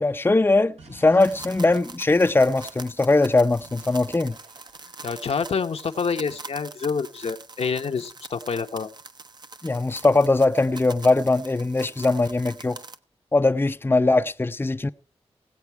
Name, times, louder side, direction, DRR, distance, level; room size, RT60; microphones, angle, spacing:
voice 1, 0.0-4.4 9.6-12.8 13.3-14.9, left 2 dB, 20° left, 0.6 m, -20 dB
sound 1, 0.8-3.0 3.6-3.9 4.3-6.1, right 3 dB, 75° right, 1.5 m, -51 dB
sound 2, 1.2-13.0, right 3 dB, 40° right, 0.8 m, -44 dB
voice 2, 5.0-8.9, left 5 dB, 65° left, 0.9 m, -27 dB
17.5 x 8.1 x 4.6 m
cardioid pair, 45°, 11 cm